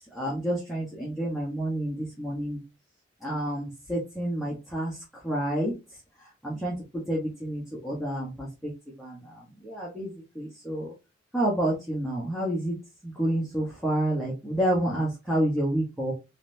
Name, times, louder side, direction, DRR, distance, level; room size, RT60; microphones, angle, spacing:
voice 1, 0.1-2.6 3.2-5.0 5.2-5.7 6.4-6.7 7.1-8.7 9.0-10.9 11.3-12.8 13.0-16.1, right 1 dB, ahead, -6 dB, 0.9 m, -29 dB
3.8 x 3.2 x 2.6 m, 0.27 s
head